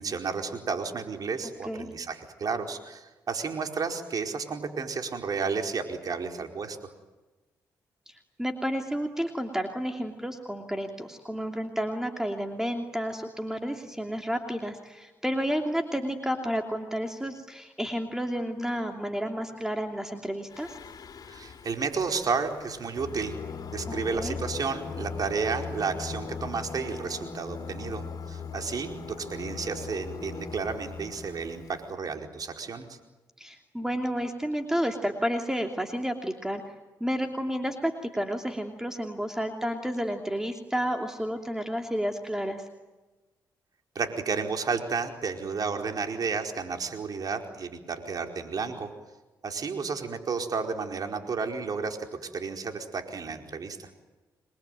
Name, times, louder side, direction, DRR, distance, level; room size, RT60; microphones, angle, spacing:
voice 1, 0.0-6.8 21.3-23.4 23.7-33.0 43.9-48.9 49.4-53.9, right 5 dB, 55° right, 4 dB, 4.6 m, -32 dB
voice 2, 8.1-20.8 24.1-24.4 33.4-36.6 37.0-42.6, equal, 5° right, 3 dB, 2.9 m, -31 dB
Singing, 20.5-31.8, left 5 dB, 55° left, 3.5 m, -39 dB
28.5 x 22.0 x 9.3 m, 1.2 s
supercardioid pair, 60°, 8 cm